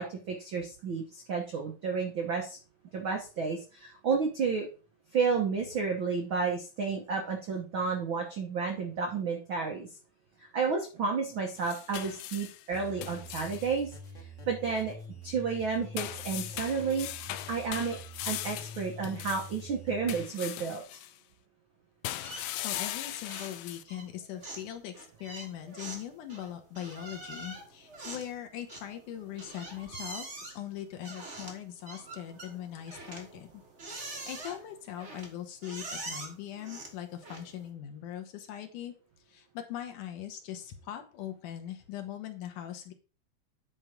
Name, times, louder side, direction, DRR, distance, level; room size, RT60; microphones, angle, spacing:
voice 1, 0.0-2.6 2.9-4.7 5.1-9.9 10.5-13.9 14.5-14.9 15.2-18.0 18.2-20.8, right 5 dB, 80° right, 2 dB, 1.1 m, -31 dB
sound 1, 11.6-13.7 16.0-19.6 20.1-21.1 22.0-23.8, left 14 dB, 85° left, 1.8 m, -39 dB
sound 2, 12.7-20.2, left 1 dB, 40° left, 1.0 m, -46 dB
sound 3, 22.2-23.0 23.2-23.6 23.9-37.7, right 2 dB, 55° right, 0.7 m, -44 dB
voice 2, 22.6-33.5 34.0-38.9 39.3-42.9, left 11 dB, 70° left, 5 dB, 2.4 m, -41 dB
9.4 x 4.4 x 5.1 m, 0.34 s
omnidirectional pair, 4.1 m